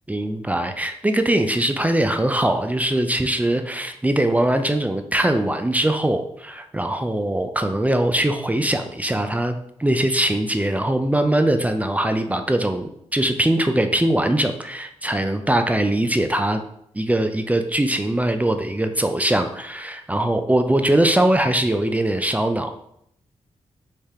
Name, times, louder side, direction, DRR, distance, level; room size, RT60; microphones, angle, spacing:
voice 1, 0.1-16.6 16.9-22.7, right 1 dB, 10° right, 7 dB, 0.4 m, -21 dB
3.3 x 3.3 x 4.3 m, 0.73 s
cardioid pair, 55°, 12 cm